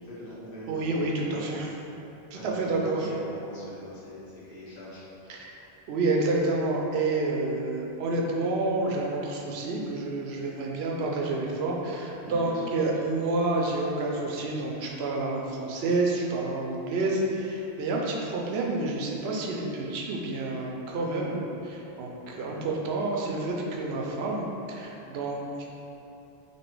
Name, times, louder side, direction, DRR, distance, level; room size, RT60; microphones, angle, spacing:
voice 1, 0.0-1.5 2.3-5.4 12.2-13.0 22.3-22.7, equal, 55° left, -10 dB, 1.3 m, -42 dB
voice 2, 0.7-1.7 2.3-3.0 5.3-5.5 5.9-21.4 21.6-25.7, right 2 dB, 75° right, -1 dB, 0.8 m, -29 dB
3.0 x 2.9 x 4.5 m, 3.0 s
omnidirectional pair, 1.1 m